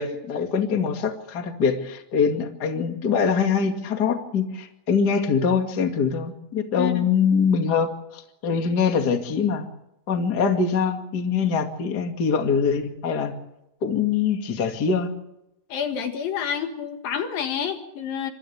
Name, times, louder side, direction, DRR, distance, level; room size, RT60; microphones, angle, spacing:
voice 1, 0.0-9.7 10.1-13.3 13.8-15.1, left 6 dB, 35° left, 4 dB, 2.2 m, -23 dB
voice 2, 15.7-18.3, left 8 dB, 70° left, 6 dB, 3.4 m, -28 dB
29.0 x 26.5 x 3.5 m, 0.86 s
omnidirectional pair, 4.2 m